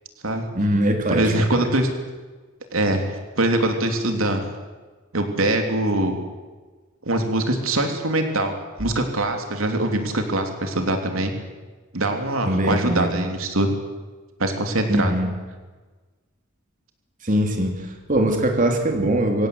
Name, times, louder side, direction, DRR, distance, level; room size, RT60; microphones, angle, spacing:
voice 1, 0.5-1.3 12.4-13.1 14.9-15.4 17.2-19.5, right 1 dB, 40° right, 3 dB, 3.0 m, -21 dB
voice 2, 1.1-1.9 2.7-4.5 5.1-6.2 7.0-8.5 8.8-11.3 11.9-13.7 14.4-15.1, right 1 dB, 85° right, 4 dB, 3.1 m, -23 dB
25.5 x 16.5 x 8.0 m, 1.3 s
head